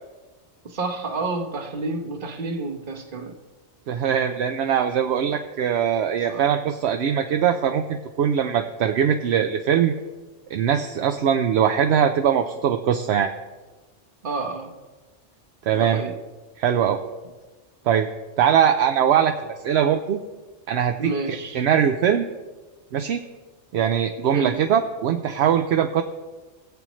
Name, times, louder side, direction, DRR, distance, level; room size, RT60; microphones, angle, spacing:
voice 1, 0.6-3.4 6.3-6.5 14.2-14.7 15.7-16.2 21.0-21.7 24.3-24.6, right 3 dB, 50° right, 5 dB, 1.2 m, -29 dB
voice 2, 3.9-9.9 10.5-13.3 15.7-16.0 16.6-17.0 17.9-18.1 18.4-20.2 20.7-22.3 22.9-23.2 23.7-26.0, right 8 dB, 70° right, 6 dB, 0.8 m, -21 dB
18.5 x 7.6 x 3.1 m, 1.2 s
omnidirectional pair, 1.2 m